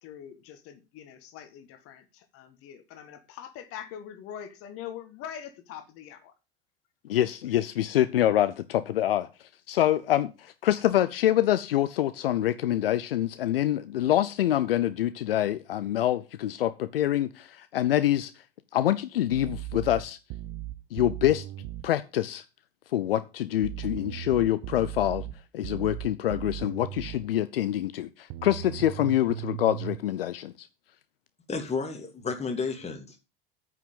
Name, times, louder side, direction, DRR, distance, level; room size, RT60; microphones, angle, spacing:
voice 1, 0.0-6.3, left 9 dB, 50° left, 9 dB, 1.7 m, -43 dB
voice 2, 7.1-18.3 18.7-20.2 20.9-21.5 21.8-22.4 22.9-25.3 25.5-30.7, left 12 dB, 75° left, 13 dB, 0.7 m, -26 dB
sound 1, 19.3-21.9 23.6-27.3 28.3-30.0, right 15 dB, 50° right, 0.8 m, -37 dB
voice 3, 31.5-33.2, left 4 dB, 20° left, 4 dB, 2.9 m, -32 dB
9.2 x 6.1 x 7.0 m, 0.29 s
figure-of-eight pair, 75°, 29 cm